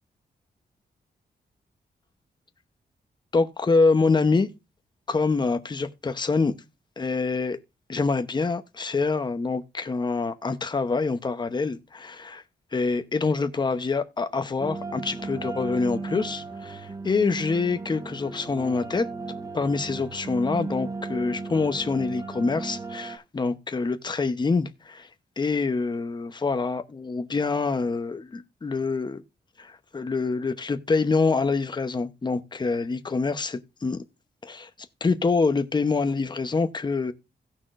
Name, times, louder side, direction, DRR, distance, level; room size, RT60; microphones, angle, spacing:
voice 1, 3.3-4.5 5.1-6.5 7.0-7.6 7.9-12.4 12.7-19.1 19.5-25.1 25.4-29.2 29.6-34.0 34.4-34.7 35.0-37.1, left 4 dB, 25° left, 0.8 m, -26 dB
sound 1, 14.6-23.2, right 3 dB, 20° right, 1.1 m, -35 dB
17.0 x 5.9 x 2.5 m
wide cardioid pair, 165°, 17 cm